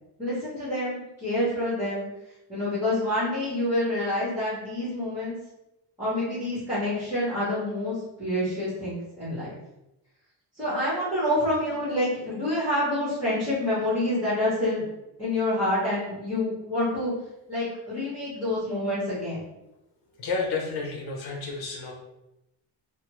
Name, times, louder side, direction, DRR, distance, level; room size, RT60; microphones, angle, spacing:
voice 1, 0.2-2.1 2.5-5.3 6.0-9.5 10.6-14.8 15.2-17.1 17.5-19.4, left 1 dB, 5° right, -10 dB, 0.9 m, -27 dB
voice 2, 20.2-21.9, left 4 dB, 60° left, 0 dB, 0.8 m, -31 dB
3.3 x 2.0 x 2.9 m, 0.89 s
cardioid pair, 175°, 43 cm